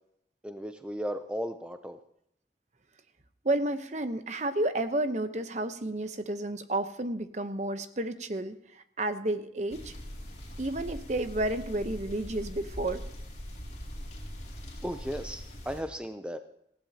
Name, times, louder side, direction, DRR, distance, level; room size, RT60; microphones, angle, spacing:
voice 1, 0.4-2.0 14.8-16.4, equal, 5° right, 8 dB, 0.5 m, -35 dB
voice 2, 3.4-9.9 10.6-13.0, right 1 dB, 40° right, 10 dB, 0.8 m, -31 dB
sound 1, 9.7-15.8, equal, 40° left, 6.3 m, -42 dB
19.0 x 15.5 x 2.8 m, 0.75 s
head